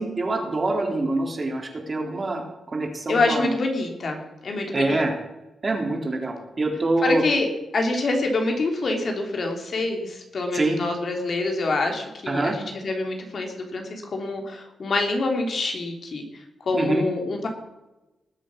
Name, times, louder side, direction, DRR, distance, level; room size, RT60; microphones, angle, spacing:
voice 1, 0.0-3.5 4.7-5.1 5.6-7.2 10.5-10.8 12.3-12.6 16.7-17.0, right 2 dB, 35° right, 2 dB, 3.5 m, -25 dB
voice 2, 3.1-5.0 7.0-17.5, left 2 dB, 55° left, 3 dB, 3.1 m, -26 dB
19.5 x 7.7 x 6.3 m, 1.0 s
cardioid pair, 85°, 0 cm